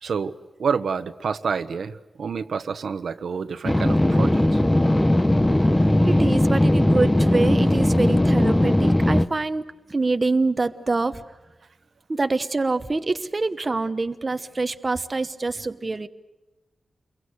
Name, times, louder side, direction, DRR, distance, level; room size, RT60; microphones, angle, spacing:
voice 1, 0.0-4.6, right 6 dB, 75° right, 10 dB, 1.1 m, -28 dB
sound 1, 3.6-9.3, left 1 dB, 10° left, 0.9 m, -18 dB
voice 2, 6.0-9.6 9.9-11.2 12.1-16.1, right 3 dB, 30° right, 9 dB, 1.0 m, -25 dB
28.5 x 23.0 x 8.1 m, 1.1 s
wide cardioid pair, 130°, 0 cm